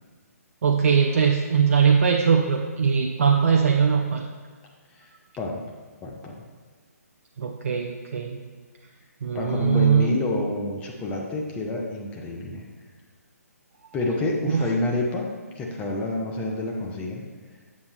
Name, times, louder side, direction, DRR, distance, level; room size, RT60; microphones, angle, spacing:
voice 1, 0.6-4.2 7.4-8.4 9.2-10.1 14.5-14.7, right 6 dB, 55° right, 2 dB, 0.5 m, -21 dB
voice 2, 6.0-6.4 9.3-12.6 13.9-15.3 15.6-17.2, left 2 dB, 15° left, -1 dB, 0.7 m, -28 dB
7.3 x 6.9 x 3.4 m, 1.4 s
figure-of-eight pair, 140°, 9 cm